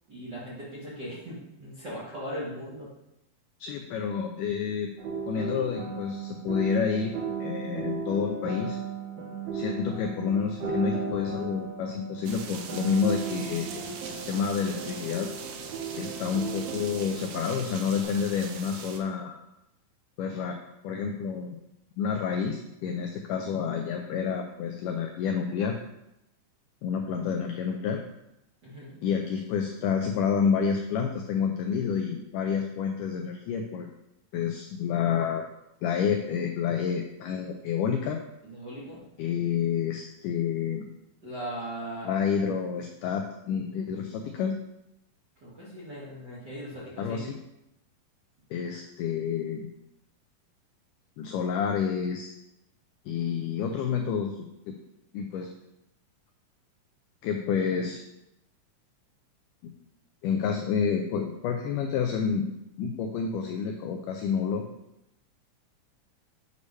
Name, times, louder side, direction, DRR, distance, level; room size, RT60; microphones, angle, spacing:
voice 1, 0.1-2.9 28.6-29.0 38.4-39.0 41.2-42.2 45.4-47.2, equal, 45° right, -8 dB, 1.4 m, -39 dB
voice 2, 3.6-4.9 5.3-8.8 9.5-15.3 15.9-19.4 20.2-20.6 20.8-21.6 22.0-25.8 26.8-28.0 29.0-33.9 34.3-35.5 35.8-38.2 39.2-40.9 42.0-44.6 47.0-47.4 48.5-49.7 51.2-52.3 53.1-54.8 55.1-55.5 57.2-58.0 59.6-59.7 60.2-62.5 62.8-64.6, left 7 dB, 85° left, 3 dB, 1.8 m, -29 dB
sound 1, 5.0-18.0, right 5 dB, 70° right, 1.5 m, -36 dB
sound 2, 12.2-19.0, right 6 dB, 90° right, 2.6 m, -41 dB
8.2 x 3.2 x 5.4 m, 0.86 s
omnidirectional pair, 4.2 m